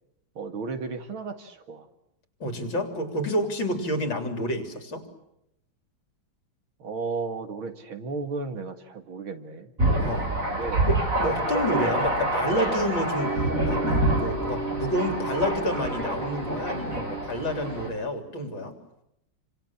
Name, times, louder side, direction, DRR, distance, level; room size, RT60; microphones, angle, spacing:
voice 1, 0.4-1.9 6.8-9.7 10.5-10.9 11.5-11.9, right 4 dB, 85° right, 8 dB, 2.9 m, -34 dB
voice 2, 2.4-5.1 10.0-10.3 10.8-13.8 14.1-18.8, equal, 70° left, 7 dB, 4.3 m, -29 dB
Thunder, 9.8-17.9, right 1 dB, 40° right, 5.9 m, -27 dB
sound 1, 13.2-17.7, right 2 dB, 10° left, 4.7 m, -34 dB
28.5 x 26.5 x 7.3 m, 0.82 s
omnidirectional pair, 2.2 m